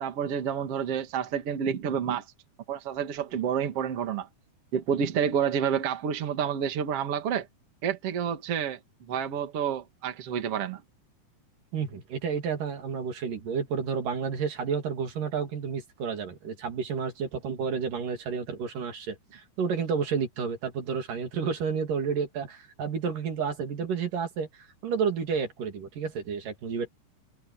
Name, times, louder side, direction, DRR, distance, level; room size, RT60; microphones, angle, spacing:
voice 1, 0.0-2.3 2.7-4.3 4.7-7.5 7.8-8.8 9.1-10.8, right 8 dB, 50° right, 2.7 m, -29 dB
voice 2, 11.7-26.9, right 6 dB, 80° right, 4.5 m, -31 dB
omnidirectional pair, 3.7 m